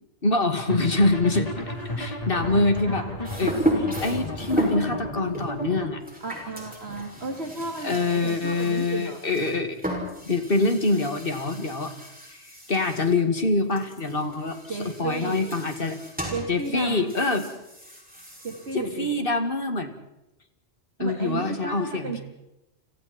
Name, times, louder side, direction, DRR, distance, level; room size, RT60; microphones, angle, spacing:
voice 1, 0.2-1.5 2.0-3.0 3.4-6.0 7.8-9.8 10.2-11.9 12.3-14.6 15.0-16.0 16.5-17.5 18.7-19.9 21.0-22.2, left 3 dB, 50° left, 7 dB, 2.4 m, -25 dB
sound 1, 0.7-5.9, left 1 dB, 30° left, 4.0 m, -33 dB
voice 2, 1.8-2.1 2.4-3.1 6.2-9.2 14.7-15.5 16.3-17.1 18.4-19.1 21.0-22.2, right 3 dB, 60° right, 3 dB, 2.5 m, -33 dB
sound 2, 3.2-4.9 5.3-13.2 13.4-18.9, equal, 5° right, 6.3 m, -34 dB
30.0 x 27.0 x 4.4 m, 0.90 s
omnidirectional pair, 1.2 m